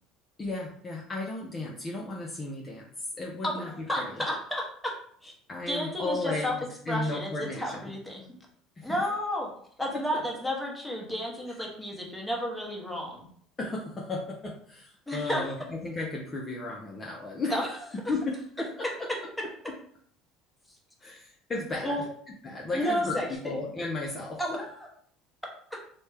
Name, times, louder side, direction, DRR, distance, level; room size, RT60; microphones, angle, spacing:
voice 1, 0.4-2.8 3.2-4.2 5.5-7.9 8.8-9.0 9.9-10.2 11.5-11.6 13.6-17.6 18.1-19.1 21.0-22.0 22.4-23.2 23.4-24.4, left 2 dB, 25° left, -2 dB, 0.5 m, -34 dB
voice 2, 3.4-4.9 5.2-5.3 5.7-6.5 6.9-8.2 8.8-9.5 9.8-13.3 15.1-15.5 17.5-17.7 19.1-19.4 21.8-22.0 22.7-23.6 24.4-24.9 25.7-25.8, equal, 5° left, -2 dB, 0.9 m, -32 dB
3.0 x 2.1 x 3.3 m, 0.62 s
supercardioid pair, 110°, 0 cm